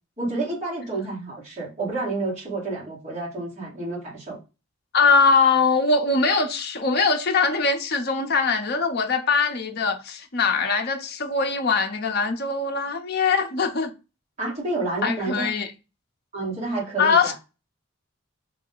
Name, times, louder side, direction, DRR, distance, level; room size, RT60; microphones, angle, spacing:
voice 1, 0.2-4.4 14.4-15.5 16.3-17.3, right 2 dB, 30° right, 2.1 m, -29 dB
voice 2, 4.9-13.9 15.0-15.7 17.0-17.3, left 4 dB, 50° left, 0.6 m, -22 dB
3.8 x 2.8 x 3.8 m
head